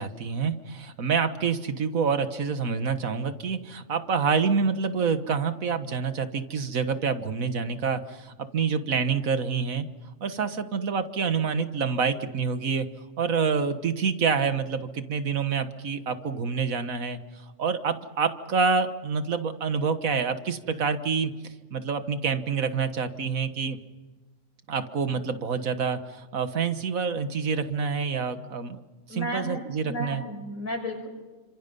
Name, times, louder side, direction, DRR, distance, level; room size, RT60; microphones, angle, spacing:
voice 1, 0.0-9.9 10.2-12.9 13.2-17.2 17.6-21.3 21.7-23.8 24.7-28.8 29.1-30.2, right 5 dB, 85° right, 9 dB, 1.9 m, -27 dB
voice 2, 29.1-29.6 29.9-31.1, equal, 80° left, 4 dB, 6.0 m, -33 dB
30.0 x 26.5 x 5.4 m, 1.3 s
omnidirectional pair, 1.4 m